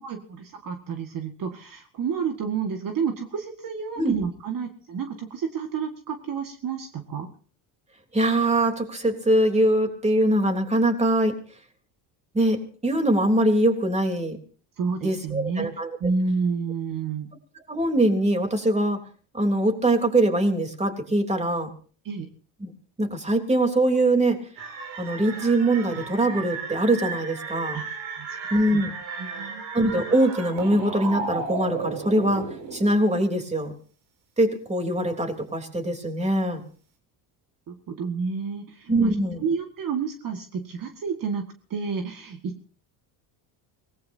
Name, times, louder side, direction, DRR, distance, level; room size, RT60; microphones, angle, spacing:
voice 1, 0.0-7.3 14.8-15.7 16.0-17.3 22.0-22.3 27.7-28.3 28.7-28.8 29.2-29.6 37.7-39.2 39.4-42.8, right 5 dB, 45° right, 5 dB, 1.9 m, -30 dB
voice 2, 8.1-11.4 12.3-14.4 15.0-15.9 17.7-19.0 19.3-21.7 22.6-22.7 23.0-24.4 25.0-27.8 28.5-28.9 29.7-32.4 32.7-33.7 34.4-36.6 38.9-39.4, right 1 dB, 15° right, 4 dB, 3.5 m, -22 dB
sound 1, 24.6-32.9, right 5 dB, 75° right, 5.7 m, -34 dB
24.5 x 19.0 x 2.8 m, 0.42 s
supercardioid pair, 100°, 44 cm